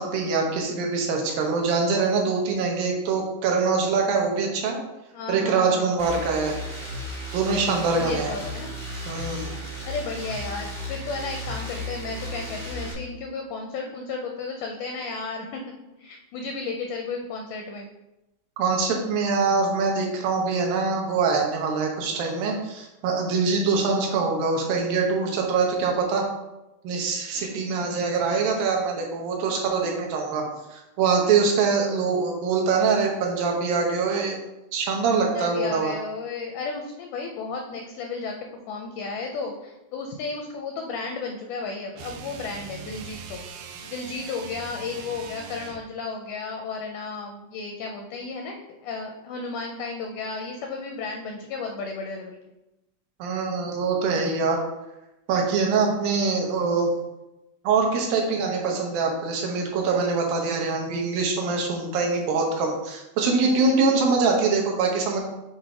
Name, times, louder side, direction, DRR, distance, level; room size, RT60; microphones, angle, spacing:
voice 1, 0.0-4.8 5.3-6.5 7.3-8.3 9.1-9.5 18.6-26.2 26.8-30.4 30.7-34.4 34.7-35.9 53.2-54.6 55.3-56.9 57.6-65.2, right 4 dB, 75° right, 1 dB, 2.6 m, -24 dB
voice 2, 5.1-5.9 6.2-6.3 7.9-8.7 9.8-15.6 16.0-17.9 27.3-28.0 35.3-43.4 43.9-48.5 48.8-52.4, left 4 dB, 85° left, 2 dB, 1.7 m, -33 dB
sound 1, 6.0-12.9, equal, 45° right, 0.6 m, -35 dB
sound 2, 41.9-45.9, right 5 dB, 90° right, 2.5 m, -41 dB
7.8 x 2.8 x 4.8 m, 0.95 s
omnidirectional pair, 4.3 m